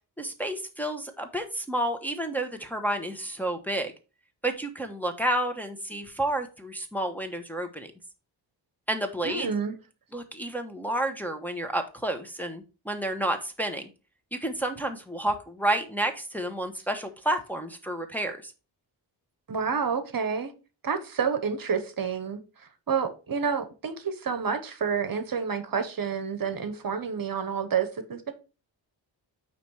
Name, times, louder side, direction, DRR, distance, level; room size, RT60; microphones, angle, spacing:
voice 1, 0.2-3.9 4.4-7.9 8.9-9.5 10.1-13.9 14.3-18.5, right 1 dB, 5° left, 1.1 m, -30 dB
voice 2, 9.2-9.8 19.5-20.5 20.8-28.3, right 6 dB, 50° right, 1.1 m, -29 dB
9.1 x 3.2 x 4.7 m
cardioid pair, 85°, 44 cm